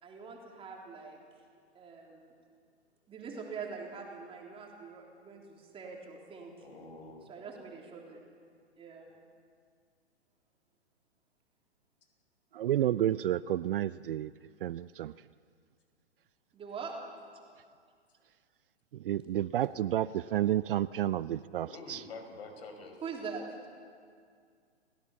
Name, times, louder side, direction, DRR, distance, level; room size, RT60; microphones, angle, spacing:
voice 1, 0.0-1.2 1.7-2.3 3.1-6.5 7.3-8.2 8.8-9.1 16.5-17.0 23.0-23.5, right 5 dB, 15° right, -1 dB, 3.6 m, -43 dB
voice 2, 6.6-7.2 21.6-23.0, left 3 dB, 60° left, 4 dB, 5.4 m, -47 dB
voice 3, 12.5-14.3 14.6-15.1 18.9-22.0, right 12 dB, 50° right, 18 dB, 0.5 m, -30 dB
29.5 x 16.5 x 7.3 m, 2.2 s
hypercardioid pair, 125°, 34 cm